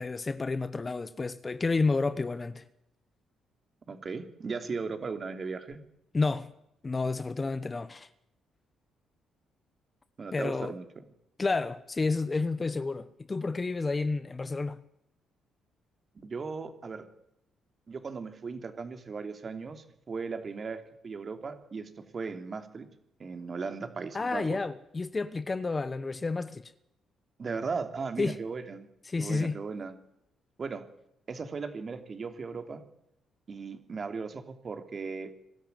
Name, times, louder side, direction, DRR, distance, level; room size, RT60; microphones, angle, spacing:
voice 1, 0.0-2.6 6.1-6.5 6.8-8.1 10.3-10.8 11.4-14.8 24.1-26.7 28.2-28.4 29.1-29.6, left 3 dB, 25° left, 1.0 m, -30 dB
voice 2, 3.9-5.8 10.2-10.8 16.1-17.0 17.9-22.9 23.2-24.6 27.4-28.9 29.2-30.0 30.6-30.8 31.3-32.8 33.5-35.3, right 4 dB, 40° right, 3.1 m, -37 dB
22.5 x 13.0 x 9.3 m
cardioid pair, 90°, 0 cm